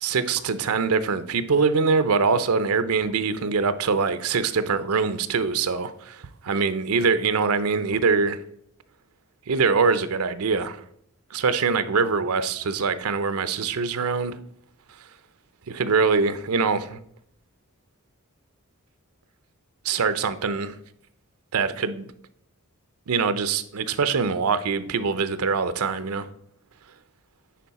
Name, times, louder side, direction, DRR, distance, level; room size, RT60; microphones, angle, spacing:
voice 1, 0.0-8.4 9.5-10.8 11.3-14.4 15.7-17.0 19.8-20.8 21.5-22.1 23.1-26.3, right 5 dB, 80° right, 0.6 m, -23 dB
10.0 x 4.3 x 4.1 m
head